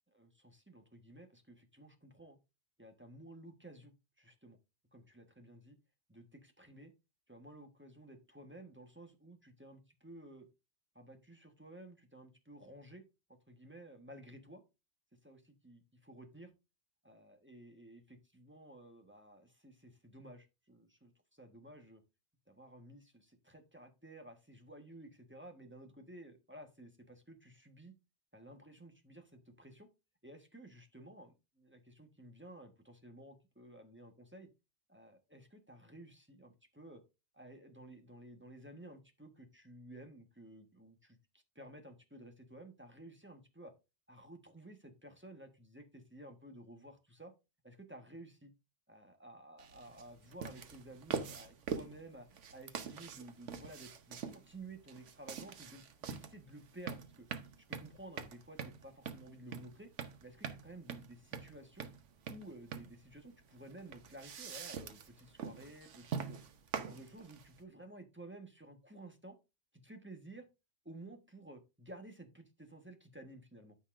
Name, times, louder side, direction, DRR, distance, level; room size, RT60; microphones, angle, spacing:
voice 1, 0.1-2.4 2.8-4.6 4.9-5.8 6.1-6.9 7.3-10.5 10.9-13.0 13.5-14.6 15.2-15.4 15.6-16.5 17.0-22.0 22.5-27.9 28.3-29.9 30.2-34.5 34.9-37.0 37.3-43.7 44.1-47.3 47.6-48.5 48.9-57.3 57.7-59.9 60.2-61.9 62.3-66.4 66.7-69.4 69.8-70.5 70.8-73.8, right 1 dB, 10° right, 5 dB, 1.3 m, -54 dB
sound 1, 49.6-67.6, right 6 dB, 90° right, 1.3 m, -44 dB
13.0 x 5.5 x 2.5 m, 0.26 s
omnidirectional pair, 1.2 m